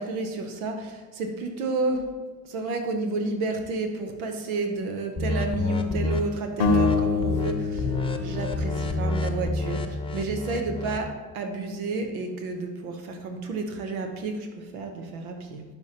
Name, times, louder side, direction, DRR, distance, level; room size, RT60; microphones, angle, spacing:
voice 1, 0.0-2.1 2.4-15.6, right 3 dB, 85° right, 5 dB, 0.9 m, -31 dB
sound 1, 5.2-6.2 6.7-7.0 7.2-7.5 7.8-11.1, left 2 dB, 10° left, 0.8 m, -28 dB
sound 2, 6.6-9.8, left 4 dB, 80° left, 0.9 m, -27 dB
11.0 x 5.3 x 2.9 m, 1.3 s
hypercardioid pair, 50°, 42 cm